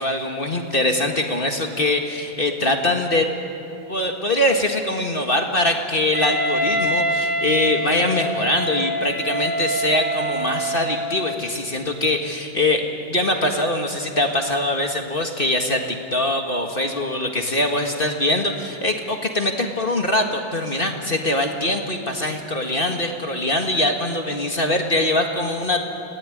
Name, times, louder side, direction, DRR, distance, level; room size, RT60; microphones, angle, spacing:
voice 1, 0.0-3.3 3.9-25.8, left 1 dB, 30° left, 3 dB, 1.8 m, -22 dB
Wind instrument woodwind instrument, 6.1-11.1, equal, 40° right, 4.0 m, -25 dB
29.5 x 18.0 x 9.9 m, 2.8 s
omnidirectional pair, 2.1 m